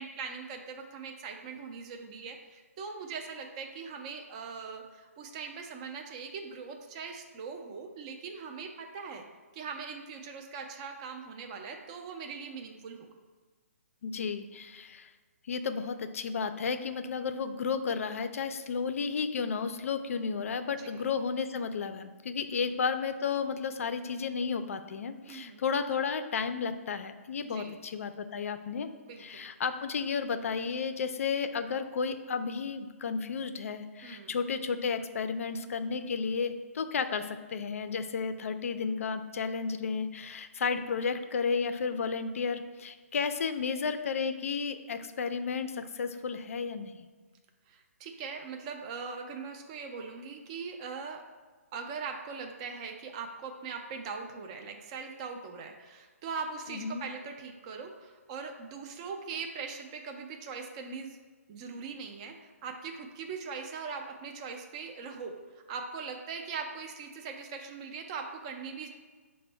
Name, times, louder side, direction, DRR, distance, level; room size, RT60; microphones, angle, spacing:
voice 1, 0.0-9.2 9.5-13.1 20.8-20.9 22.5-22.7 25.3-25.6 27.4-27.8 29.1-29.5 34.0-34.4 47.7-51.2 51.7-61.2 61.5-65.4 65.7-68.9, right 5 dB, 25° right, 3 dB, 0.3 m, -41 dB
voice 2, 14.0-15.1 15.5-28.9 29.2-47.0 56.7-57.0, left 5 dB, 65° left, 10 dB, 0.4 m, -33 dB
5.0 x 2.1 x 4.3 m, 1.4 s
hypercardioid pair, 155°, 8 cm